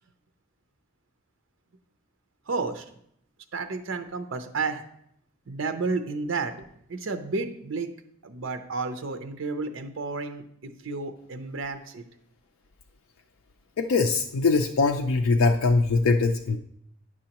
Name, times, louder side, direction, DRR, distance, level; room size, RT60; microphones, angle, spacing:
voice 1, 2.5-2.9 3.5-4.8 5.5-7.9 8.2-12.0, right 4 dB, 70° right, 7 dB, 0.6 m, -31 dB
voice 2, 13.8-16.6, left 3 dB, 80° left, 3 dB, 0.4 m, -22 dB
9.6 x 6.2 x 2.9 m, 0.71 s
head